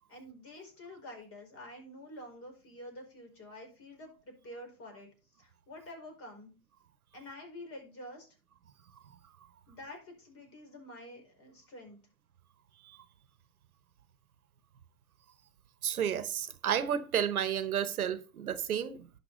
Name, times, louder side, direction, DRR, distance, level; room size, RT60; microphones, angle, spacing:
voice 1, 0.1-5.1 5.4-6.5 7.1-8.3 9.7-12.0, left 1 dB, 30° left, 5.0 m, -48 dB
voice 2, 15.8-19.1, right 9 dB, 90° right, 1.1 m, -32 dB
11.0 x 5.9 x 4.1 m
hypercardioid pair, 100°, 42 cm